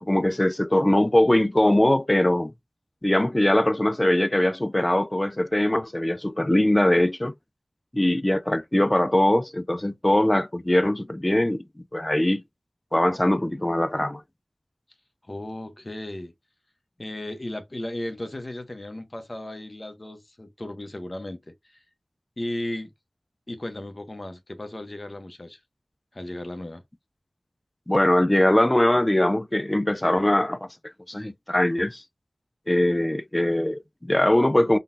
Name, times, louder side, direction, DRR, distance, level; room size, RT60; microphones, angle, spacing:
voice 1, 0.0-2.5 3.0-7.3 7.9-11.6 11.9-12.4 12.9-14.2 27.9-30.6 31.1-32.0 32.7-34.8, left 1 dB, 25° left, 0.4 m, -21 dB
voice 2, 15.3-16.3 17.0-21.5 22.4-22.9 23.5-25.6 26.1-26.8, left 1 dB, 40° left, 0.9 m, -35 dB
3.8 x 2.3 x 2.6 m
wide cardioid pair, 50°, 0 cm